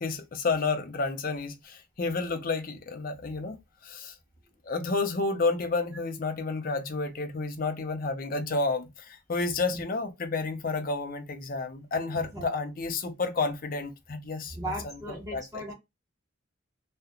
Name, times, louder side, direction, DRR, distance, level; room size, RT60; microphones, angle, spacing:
voice 1, 0.0-3.6 3.8-4.1 4.7-14.5 15.3-15.4, left 3 dB, 45° left, 0.5 m, -30 dB
voice 2, 12.1-12.5 14.5-15.7, right 1 dB, 15° right, 1.0 m, -37 dB
2.4 x 2.1 x 2.8 m
head